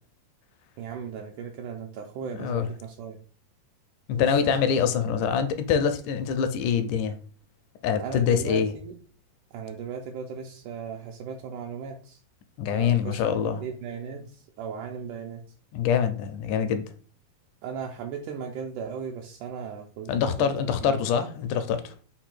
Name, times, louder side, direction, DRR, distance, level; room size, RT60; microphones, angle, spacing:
voice 1, 0.8-3.2 4.2-4.7 8.0-9.0 9.5-12.2 12.7-13.2 13.6-15.5 17.6-20.1 20.4-20.5 20.8-21.1, right 6 dB, 80° right, 1.9 m, -37 dB
voice 2, 4.1-7.2 7.8-8.7 12.6-13.6 15.7-16.8 20.1-21.9, left 7 dB, 80° left, 1.9 m, -25 dB
5.4 x 2.2 x 4.4 m
omnidirectional pair, 3.9 m